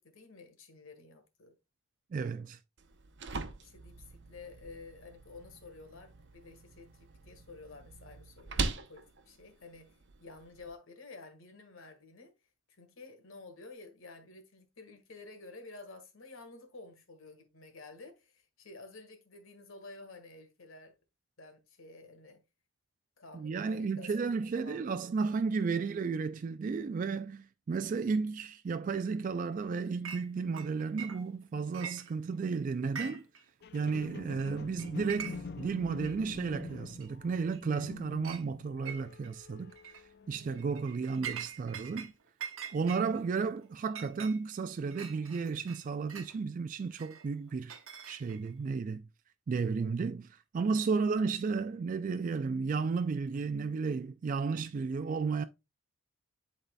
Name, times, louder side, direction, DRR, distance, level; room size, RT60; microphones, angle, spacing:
voice 1, 0.0-1.5 3.6-12.3 12.7-20.9 21.4-22.4 23.2-24.1 24.5-25.0 40.4-40.8, left 3 dB, 75° left, 1.6 m, -51 dB
voice 2, 2.1-2.6 23.3-33.3 33.7-40.0 40.3-42.1 42.7-47.8 48.1-49.0 49.5-55.4, right 5 dB, 40° right, 0.3 m, -33 dB
sound 1, 2.8-10.7, right 4 dB, 60° right, 0.8 m, -42 dB
Chink clink, 30.0-30.3 30.5-31.4 31.7-32.5 32.8-33.4 33.7-33.8 34.4-34.5 34.8-35.6 36.0-36.1 37.0-37.1 37.5-37.9 38.2-38.4 38.9-39.3 39.8-40.0 40.5-42.1 42.4-46.3 47.0-48.5, right 8 dB, 80° right, 1.1 m, -44 dB
sound 2, 33.6-41.1 41.6-41.7, left 4 dB, 50° left, 0.5 m, -46 dB
11.0 x 4.1 x 2.2 m
head